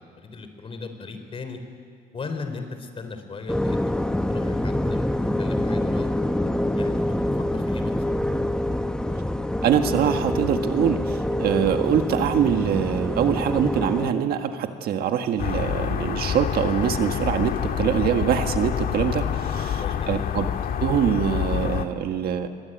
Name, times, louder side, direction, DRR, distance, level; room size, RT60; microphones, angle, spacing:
voice 1, 0.0-1.6 2.1-4.0 4.3-5.1 5.4-6.1 6.8-8.0 19.5-20.1, left 4 dB, 35° left, 7 dB, 4.0 m, -37 dB
sound 1, 3.5-14.1, left 1 dB, 5° left, 1.0 m, -26 dB
voice 2, 9.6-19.8 20.1-20.5 20.8-22.5, right 8 dB, 65° right, 6 dB, 1.6 m, -24 dB
sound 2, 15.4-21.9, left 9 dB, 60° left, 1.7 m, -27 dB
27.5 x 22.5 x 9.2 m, 2.2 s
cardioid pair, 110°, 17 cm